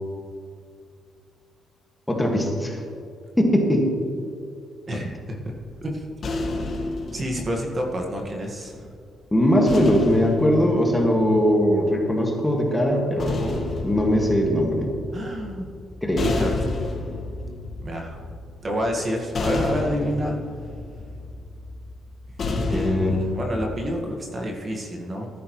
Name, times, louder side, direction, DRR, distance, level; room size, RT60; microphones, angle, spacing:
voice 1, 2.1-2.8 3.4-3.9 9.3-14.9 16.0-16.3 22.7-23.2, equal, 10° left, 0 dB, 1.8 m, -21 dB
voice 2, 4.9-5.5 5.8-6.1 7.1-8.9 15.1-15.7 16.2-16.9 17.8-18.2 18.6-20.4 22.7-25.3, equal, 35° right, 1 dB, 1.7 m, -29 dB
sound 1, 5.4-8.7 9.7-11.9 12.9-24.0, left 2 dB, 45° left, 1.6 m, -31 dB
13.5 x 11.0 x 3.2 m, 2.3 s
cardioid pair, 90°, 0 cm